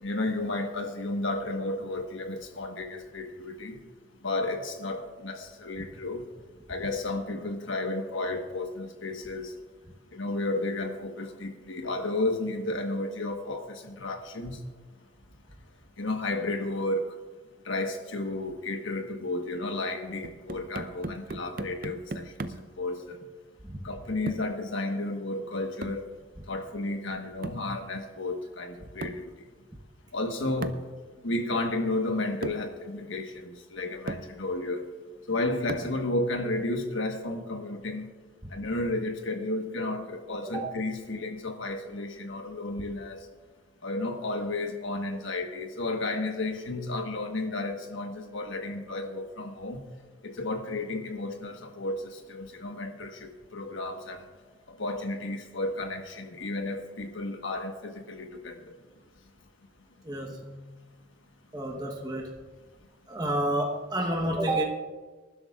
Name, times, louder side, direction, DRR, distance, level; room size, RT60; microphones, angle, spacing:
voice 1, 0.0-3.8 4.2-6.2 6.7-9.5 10.1-14.6 16.0-17.1 17.6-23.2 23.8-26.1 26.5-29.2 30.1-30.8 31.2-34.8 35.3-38.1 38.5-43.3 43.8-49.8 50.2-54.2 54.8-58.8, left 2 dB, 80° left, 5 dB, 1.3 m, -32 dB
sound 1, 20.2-22.8 24.3-24.6 25.8-26.1 27.4-27.7 29.0-29.3 30.6-30.9 31.9-32.0 32.4-32.7 33.6-33.7 34.1-34.3 35.7-36.0, right 2 dB, 45° right, 0.5 m, -37 dB
voice 2, 60.0-60.5 61.5-62.3 63.1-64.6, right 1 dB, 20° right, 0 dB, 1.0 m, -29 dB
25.5 x 11.5 x 2.4 m, 1.3 s
head